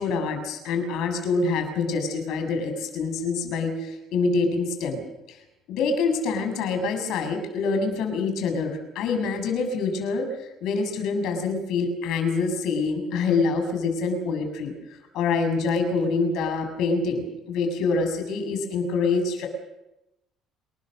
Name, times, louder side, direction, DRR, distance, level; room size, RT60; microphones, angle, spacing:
voice 1, 0.0-5.4 5.7-10.3 10.6-19.5, left 4 dB, 70° left, 6 dB, 7.0 m, -26 dB
29.0 x 20.5 x 6.7 m, 0.91 s
cardioid pair, 140°, 0 cm